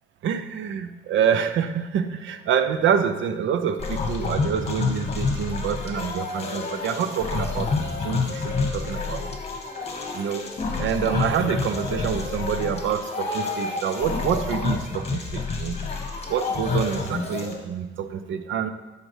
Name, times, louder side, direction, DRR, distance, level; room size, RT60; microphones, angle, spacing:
voice 1, 0.2-9.2 10.1-10.5 10.8-15.8 16.3-18.7, right 8 dB, 75° right, 11 dB, 0.6 m, -26 dB
sound 1, 3.8-17.5, left 4 dB, 30° left, 1.6 m, -28 dB
12.5 x 4.9 x 3.3 m, 1.2 s
cardioid pair, 90°, 20 cm